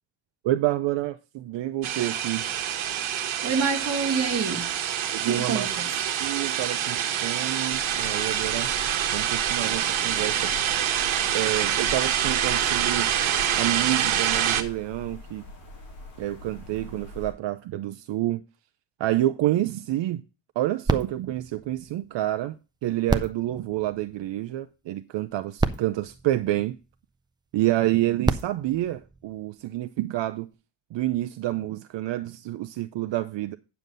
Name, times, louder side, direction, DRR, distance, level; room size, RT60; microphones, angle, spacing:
voice 1, 0.4-2.4 5.1-5.7 6.2-8.7 9.1-10.5 11.3-13.1 13.6-15.5 16.2-18.4 19.0-20.2 20.6-26.8 27.5-30.5 30.9-33.6, right 15 dB, 70° right, 0.6 m, -28 dB
sound 1, 1.8-14.6, right 10 dB, 90° right, 1.2 m, -26 dB
voice 2, 3.4-4.8 5.2-5.9, right 5 dB, 30° right, 1.6 m, -27 dB
sound 2, 7.7-17.3, left 1 dB, 65° left, 4.3 m, -42 dB
sound 3, 20.8-22.5 23.0-24.6 25.3-25.4 25.6-27.2 28.0-29.8 30.5-30.6, right 3 dB, 10° right, 0.3 m, -31 dB
9.1 x 6.9 x 3.9 m
wide cardioid pair, 175°, 46 cm